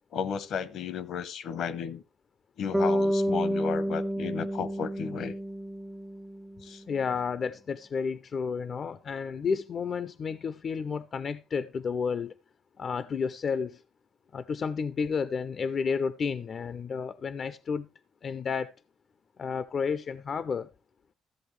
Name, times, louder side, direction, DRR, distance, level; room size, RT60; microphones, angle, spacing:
voice 1, 0.1-2.0 2.6-5.3 6.6-6.8, left 7 dB, 75° left, 0.8 m, -33 dB
Bass guitar, 2.7-6.9, equal, 10° right, 0.5 m, -30 dB
voice 2, 6.9-12.3 12.8-13.8 14.3-17.9 18.2-18.7 19.4-20.7, left 5 dB, 50° left, 0.4 m, -31 dB
14.0 x 7.7 x 3.2 m
cardioid pair, 90°, 0 cm